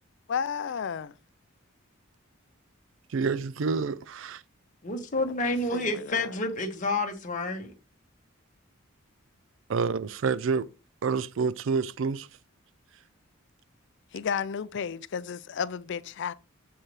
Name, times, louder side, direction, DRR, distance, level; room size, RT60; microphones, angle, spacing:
voice 1, 0.3-1.1 5.7-6.3 14.1-16.3, left 7 dB, 55° left, 0.4 m, -32 dB
voice 2, 3.1-4.4 9.7-10.7 11.0-12.3, right 5 dB, 60° right, 0.4 m, -28 dB
voice 3, 4.8-7.7, left 2 dB, 35° left, 1.3 m, -29 dB
7.3 x 4.6 x 3.2 m
head